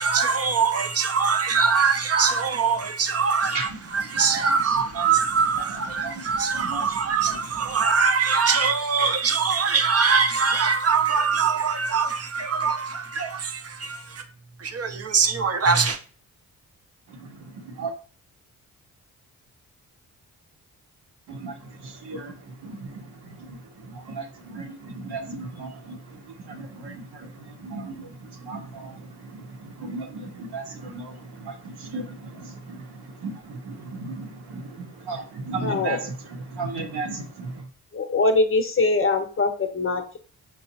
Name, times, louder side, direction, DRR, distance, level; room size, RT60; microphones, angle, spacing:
voice 1, 0.0-14.2 14.6-16.0, right 5 dB, 40° right, 0.6 m, -23 dB
voice 2, 4.6-5.1 6.0-6.9 7.3-7.4 17.2-17.9 21.3-23.6 23.8-37.6, right 3 dB, 85° right, 0.8 m, -36 dB
voice 3, 35.6-36.0 37.9-40.2, left 3 dB, 35° left, 0.7 m, -22 dB
5.3 x 2.0 x 2.7 m
supercardioid pair, 55°, 37 cm